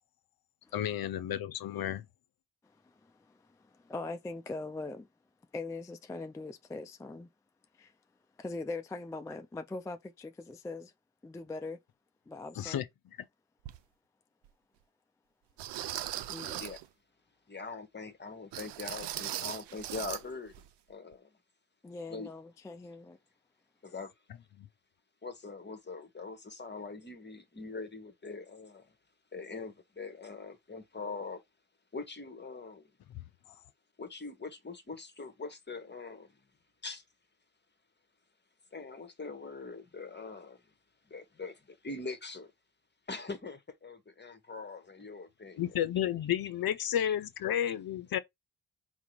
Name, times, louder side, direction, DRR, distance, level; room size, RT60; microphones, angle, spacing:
voice 1, 0.7-2.1 12.6-12.9 24.6-24.7 45.6-48.2, left 10 dB, 55° left, 0.7 m, -32 dB
voice 2, 2.6-5.1 5.5-7.3 7.7-7.9 8.4-10.9 11.2-11.8 12.3-12.8 16.3-16.7 21.8-23.2, left 3 dB, 10° left, 0.3 m, -41 dB
sound 1, 13.6-13.8 14.5-14.6 15.6-16.9 18.5-20.2 20.5-20.7 21.1-21.2, right 13 dB, 65° right, 0.5 m, -39 dB
voice 3, 17.5-20.5 20.9-21.3 22.1-22.3 23.8-24.1 25.2-28.9 29.3-31.4 31.9-32.9 34.0-36.3 36.8-37.0 38.7-40.6 41.1-42.5 43.1-45.6 47.0-47.2 47.6-47.7 48.1-48.2, left 3 dB, 25° left, 0.9 m, -42 dB
3.7 x 2.1 x 4.4 m
supercardioid pair, 50°, 45 cm